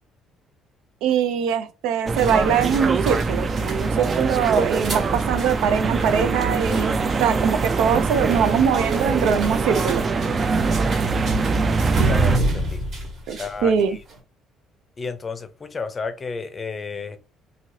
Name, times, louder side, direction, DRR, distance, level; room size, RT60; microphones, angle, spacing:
voice 1, 1.0-6.9 7.2-10.0 13.3-14.0, right 7 dB, 90° right, 0.5 m, -22 dB
sound 1, 2.1-12.4, right 4 dB, 30° right, 0.3 m, -23 dB
sound 2, 2.1-14.2, right 1 dB, 50° right, 1.5 m, -32 dB
voice 2, 12.0-12.8 13.4-14.0 15.0-17.2, left 4 dB, 25° left, 0.5 m, -32 dB
3.1 x 2.8 x 2.7 m
cardioid pair, 135°, 0 cm